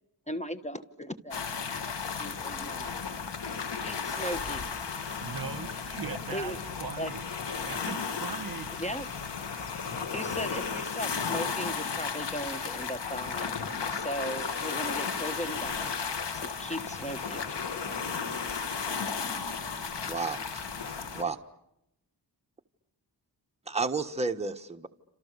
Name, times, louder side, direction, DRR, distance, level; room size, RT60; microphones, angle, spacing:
voice 1, 0.3-3.0 3.8-4.6 6.3-6.6 7.0-7.1 8.8-9.1 10.1-13.5 13.9-15.9 16.3-17.4, equal, 15° left, 10 dB, 1.4 m, -37 dB
sound 1, 1.3-21.2, left 5 dB, 75° left, 1.9 m, -34 dB
voice 2, 5.2-6.5 6.8-7.2 7.6-8.7, right 5 dB, 50° right, 11 dB, 1.9 m, -39 dB
voice 3, 19.7-20.5 21.1-21.4 23.7-24.9, right 4 dB, 15° right, 5 dB, 1.4 m, -32 dB
28.5 x 27.5 x 6.8 m, 0.84 s
cardioid pair, 65°, 42 cm